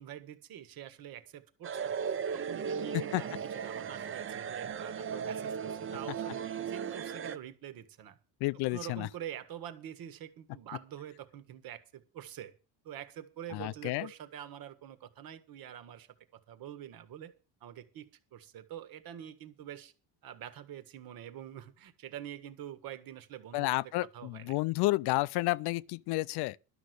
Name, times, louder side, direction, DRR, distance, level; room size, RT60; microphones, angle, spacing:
voice 1, 0.0-2.0 2.3-8.2 8.7-12.5 12.8-16.1 16.3-17.3 17.6-19.9 20.2-24.6, right 10 dB, 55° right, 1.7 m, -46 dB
sound 1, 1.6-7.4, right 7 dB, 30° right, 0.7 m, -36 dB
voice 2, 2.9-3.2 8.4-9.1 13.5-14.1 23.5-26.6, left 20 dB, 65° left, 0.5 m, -31 dB
12.0 x 6.3 x 8.0 m
cardioid pair, 140°, 42 cm